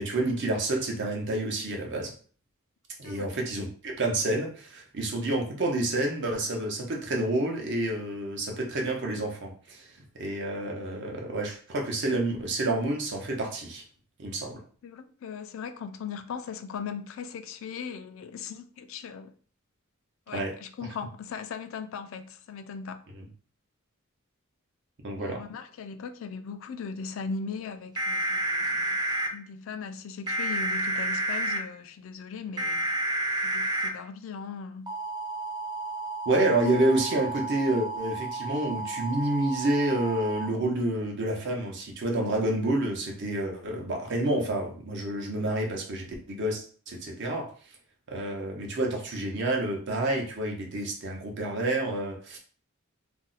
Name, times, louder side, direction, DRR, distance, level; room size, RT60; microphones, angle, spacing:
voice 1, 0.0-2.1 3.0-9.8 10.1-13.8 14.2-14.6 20.3-20.5 25.0-25.4 36.3-47.5 48.1-52.4, right 1 dB, 60° right, 0.8 m, -29 dB
voice 2, 3.0-3.5 14.8-19.3 20.3-23.0 25.1-29.0 29.3-32.9 33.4-34.9, left 5 dB, 70° left, 0.3 m, -39 dB
sound 1, 28.0-29.3 30.3-31.6 32.6-33.9 34.9-40.5, right 2 dB, 20° right, 0.6 m, -31 dB
2.6 x 2.1 x 3.8 m
head